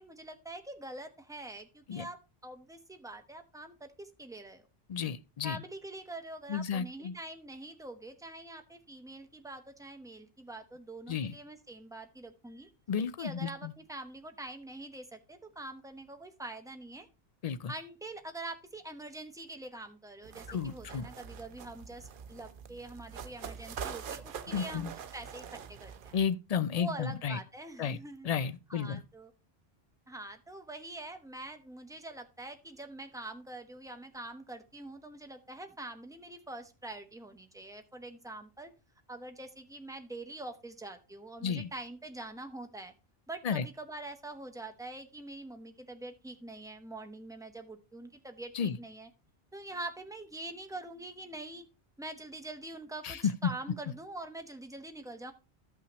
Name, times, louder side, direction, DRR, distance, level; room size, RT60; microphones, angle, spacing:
voice 1, 0.0-4.7 5.4-12.7 13.2-17.1 17.7-26.1 26.7-28.3 28.7-29.3 30.1-38.7 39.1-42.9 43.3-49.1 49.5-51.7 52.0-55.3, right 2 dB, 5° right, 0.9 m, -45 dB
voice 2, 4.9-5.6 6.5-7.1 11.1-11.4 12.9-13.7 17.4-17.7 20.5-21.1 24.5-24.9 26.1-27.4 27.8-28.0 28.2-29.0 41.4-41.7 43.4-43.7 48.5-48.8 53.0-53.5, left 7 dB, 50° left, 0.5 m, -32 dB
sound 1, 20.2-26.3, right 7 dB, 60° right, 0.8 m, -44 dB
13.5 x 5.7 x 3.0 m
omnidirectional pair, 1.1 m